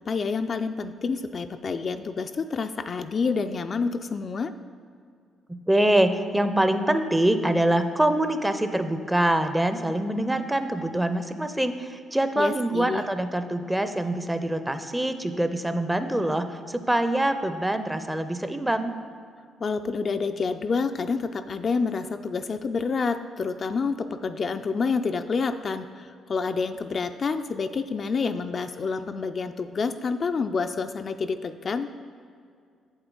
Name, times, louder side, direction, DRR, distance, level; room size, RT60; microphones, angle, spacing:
voice 1, 0.1-4.5 12.4-13.0 19.6-31.9, left 4 dB, 45° left, 8 dB, 0.3 m, -28 dB
voice 2, 5.5-18.9, right 1 dB, 10° right, 9 dB, 0.5 m, -24 dB
7.9 x 7.7 x 3.8 m, 2.2 s
cardioid pair, 90°, 0 cm